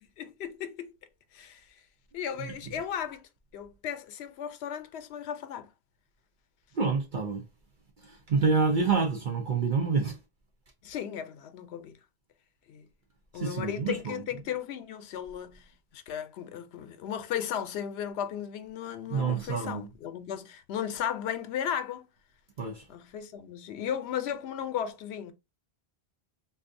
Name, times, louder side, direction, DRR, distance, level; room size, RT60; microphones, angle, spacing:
voice 1, 0.2-0.9 1.3-1.7 2.1-5.7 10.8-12.0 12.7-12.9 13.3-15.7 15.9-22.1 22.9-25.3, left 9 dB, 85° left, 0.8 m, -35 dB
voice 2, 6.7-7.4 8.0-10.2 13.3-14.2 19.1-19.8 22.6-22.8, right 5 dB, 55° right, 0.7 m, -27 dB
3.9 x 2.4 x 2.5 m
omnidirectional pair, 1.1 m